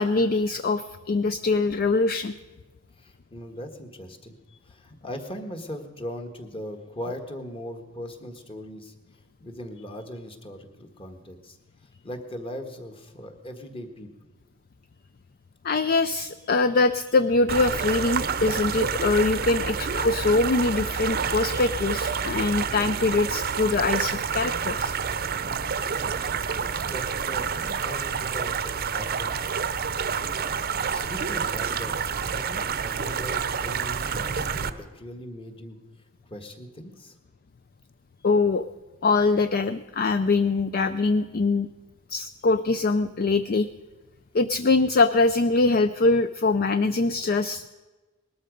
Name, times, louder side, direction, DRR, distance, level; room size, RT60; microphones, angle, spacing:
voice 1, 0.0-2.3 15.6-24.9 38.2-38.7 39.0-41.7 42.1-43.7 44.3-47.7, left 3 dB, 45° left, 11 dB, 0.4 m, -23 dB
voice 2, 3.0-4.4 4.6-8.9 9.4-11.6 12.0-14.1 25.8-29.8 30.6-35.8 36.3-37.2, equal, 25° left, 5 dB, 1.5 m, -39 dB
sound 1, 17.5-34.7, right 6 dB, 45° right, 0.7 m, -28 dB
20.0 x 13.0 x 5.2 m, 1.2 s
head